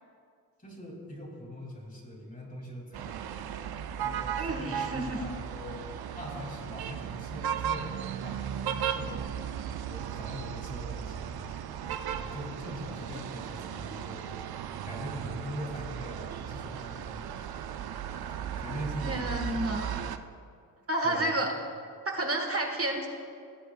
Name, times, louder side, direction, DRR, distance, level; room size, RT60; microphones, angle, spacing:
voice 1, 0.6-3.5 4.0-9.5 9.9-11.7 12.2-14.3 14.8-17.5 18.6-19.4 21.0-21.4, equal, 20° left, -2 dB, 2.9 m, -42 dB
sound 1, 2.9-20.2, right 9 dB, 75° right, 0.6 m, -36 dB
voice 2, 4.3-5.2 13.9-14.0 19.0-20.0 20.9-21.5 22.0-23.1, right 1 dB, 35° right, 2 dB, 1.5 m, -30 dB
18.5 x 7.9 x 2.4 m, 2.2 s
cardioid pair, 60°, 38 cm